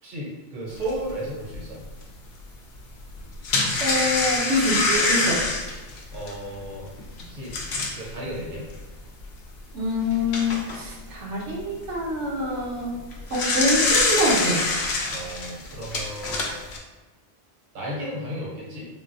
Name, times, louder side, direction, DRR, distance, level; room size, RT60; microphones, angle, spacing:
voice 1, 0.0-1.8 6.1-6.9 7.3-7.6 7.9-8.7 15.1-16.5 17.7-18.9, right 1 dB, 50° right, -4 dB, 0.8 m, -34 dB
sound 1, 0.9-1.0 1.5-1.6 3.1-8.1 8.7-8.8 9.2-9.3 10.0-10.8 13.0-16.8, left 3 dB, 65° left, 0.8 m, -25 dB
voice 2, 3.8-5.4 9.7-12.9 13.3-14.6, left 1 dB, 80° right, -4 dB, 1.0 m, -25 dB
3.8 x 2.0 x 2.5 m, 1.2 s
omnidirectional pair, 1.2 m